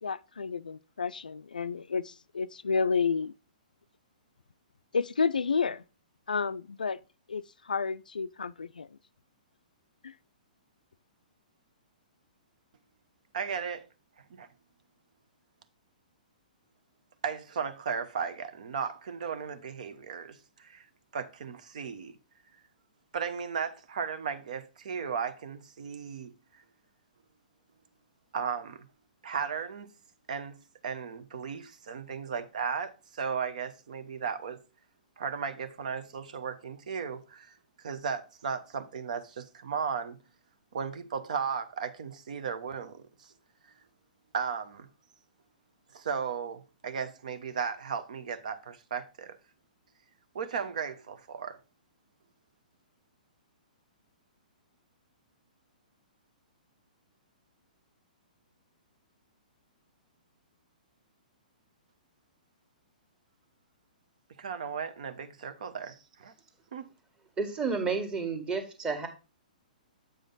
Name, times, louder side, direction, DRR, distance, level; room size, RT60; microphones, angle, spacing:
voice 1, 0.0-3.3 4.9-5.8 6.3-7.0 7.3-9.0 10.0-10.1, left 5 dB, 80° left, 0.3 m, -31 dB
voice 2, 13.3-13.9 14.3-14.5 17.2-20.9 21.1-22.2 23.1-26.6 28.3-28.9 29.2-29.9 30.3-30.6 30.8-34.6 35.2-37.6 37.8-40.2 40.7-43.3 44.3-44.9 45.9-49.4 50.3-51.6 64.4-66.3 66.7-66.9, right 6 dB, 60° right, 0.9 m, -35 dB
voice 3, 67.4-69.1, right 4 dB, 15° right, 1.6 m, -31 dB
7.7 x 5.1 x 3.9 m
figure-of-eight pair, 120°, 5 cm